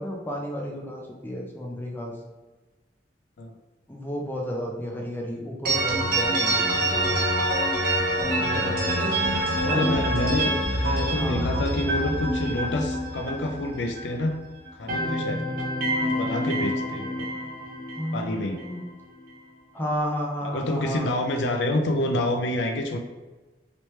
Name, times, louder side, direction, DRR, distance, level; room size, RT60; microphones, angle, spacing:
voice 1, 0.0-2.2 3.9-7.1 8.1-9.1 9.6-9.9 11.1-11.6 18.0-18.8 19.7-21.2, equal, 10° left, -1 dB, 0.5 m, -32 dB
sound 1, 5.7-14.4 14.7-18.8, right 1 dB, 60° right, 0.9 m, -26 dB
voice 2, 9.7-14.4 14.8-15.5 16.0-17.3 18.1-18.6 20.4-23.0, left 1 dB, 90° left, 4 dB, 0.5 m, -28 dB
3.1 x 3.0 x 3.1 m, 1.2 s
head